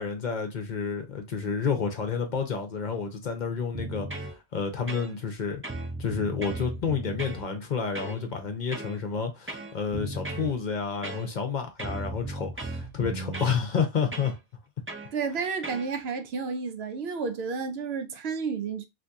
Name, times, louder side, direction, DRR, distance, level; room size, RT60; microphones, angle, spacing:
voice 1, 0.0-5.6 6.0-14.3, left 6 dB, 50° left, 0.8 m, -30 dB
sound 1, 3.7-4.3 4.9-5.4 5.6-7.4 8.0-8.2 8.7-9.0 9.5-10.5 11.0-11.5 11.8-13.6 14.1-14.3 14.9-15.1 15.6-15.9, right 2 dB, 15° right, 0.5 m, -36 dB
voice 2, 15.1-18.9, right 5 dB, 70° right, 0.8 m, -31 dB
2.7 x 2.6 x 3.5 m
omnidirectional pair, 1.1 m